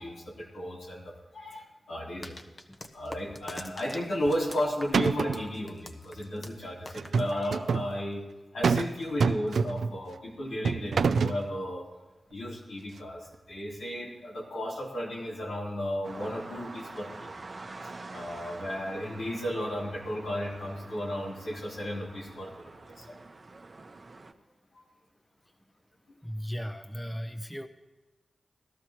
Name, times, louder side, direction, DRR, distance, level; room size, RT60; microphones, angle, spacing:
voice 1, 0.0-2.4 2.9-8.2 8.5-11.9 12.3-17.4 18.1-23.2 24.7-24.8, equal, 90° left, -5 dB, 3.2 m, -34 dB
sound 1, 2.2-8.0, left 2 dB, 40° left, 0.9 m, -46 dB
sound 2, 4.3-4.6 4.9-5.5 6.9-7.9 8.6-8.9 9.2-10.0 10.6-11.4, right 5 dB, 85° right, 0.4 m, -26 dB
sound 3, 16.0-24.3, right 3 dB, 45° right, 0.9 m, -46 dB
voice 2, 26.2-27.7, equal, 15° left, 9 dB, 0.7 m, -36 dB
17.0 x 12.5 x 3.0 m, 1.2 s
cardioid pair, 45°, 0 cm